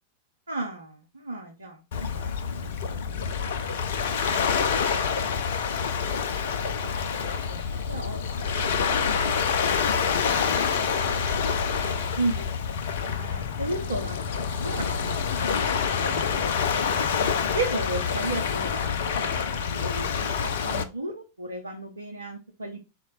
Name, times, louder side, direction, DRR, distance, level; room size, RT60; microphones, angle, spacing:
voice 1, 0.5-2.2 2.5-3.2 4.0-4.3 5.1-5.2 6.0-6.9 7.1-7.6 7.9-8.2 8.7-9.7 11.1-11.5 11.9-12.5 13.0-15.3 15.6-16.5 17.5-18.9 19.2-22.8, right 2 dB, 75° right, 1 dB, 0.6 m, -35 dB
Waves surf, 1.9-20.8, left 6 dB, 60° left, 0.4 m, -27 dB
4.1 x 2.2 x 4.0 m, 0.29 s
figure-of-eight pair, 90°, 0 cm